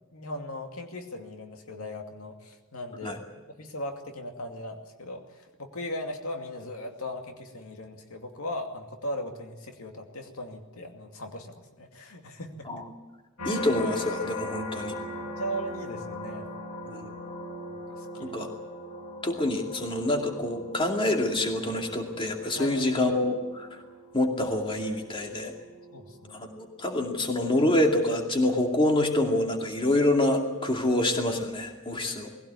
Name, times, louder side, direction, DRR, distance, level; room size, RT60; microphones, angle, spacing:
voice 1, 0.1-3.1 3.6-12.8 15.4-16.5 17.7-18.3 22.6-22.9 25.9-26.5 31.9-32.1, left 1 dB, 85° left, 4 dB, 2.5 m, -38 dB
sound 1, 13.4-28.6 29.1-29.5, left 1 dB, 65° left, 4.8 m, -40 dB
voice 2, 13.4-15.0 16.9-17.1 18.2-18.5 19.2-23.7 24.1-25.5 26.3-32.3, left 1 dB, 25° left, 2 dB, 2.4 m, -26 dB
21.0 x 16.5 x 9.6 m, 1.2 s
head